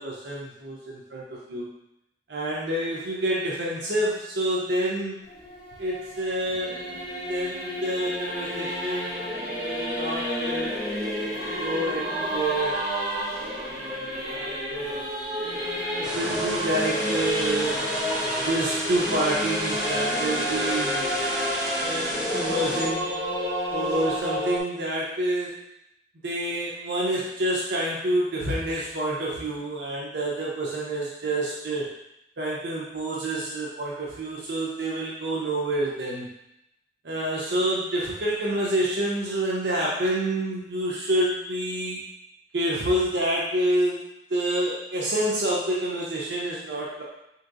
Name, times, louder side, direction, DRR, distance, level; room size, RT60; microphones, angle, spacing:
voice 1, 0.0-1.7 2.3-5.2 5.8-6.8 7.3-9.2 9.6-10.8 11.6-12.9 14.1-15.1 16.0-17.8 18.4-21.1 21.8-23.2 23.7-25.6 26.2-31.9 32.4-36.3 37.0-42.0 42.5-44.0 44.3-47.0, right 1 dB, 70° right, -5 dB, 0.7 m, -28 dB
Singing / Musical instrument, 5.2-24.6, equal, 35° right, 1.2 m, -30 dB
sound 1, 16.0-22.9, right 1 dB, 5° right, 0.6 m, -33 dB
4.5 x 2.9 x 2.5 m, 0.82 s
head